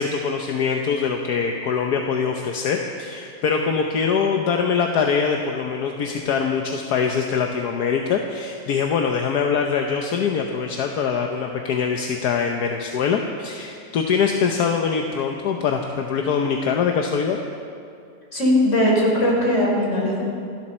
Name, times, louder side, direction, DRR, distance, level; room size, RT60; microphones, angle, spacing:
voice 1, 0.0-17.4, left 6 dB, 80° left, 3 dB, 1.4 m, -23 dB
voice 2, 18.3-20.2, left 1 dB, 50° left, -3 dB, 4.4 m, -19 dB
26.5 x 12.0 x 4.3 m, 2.4 s
omnidirectional pair, 1.7 m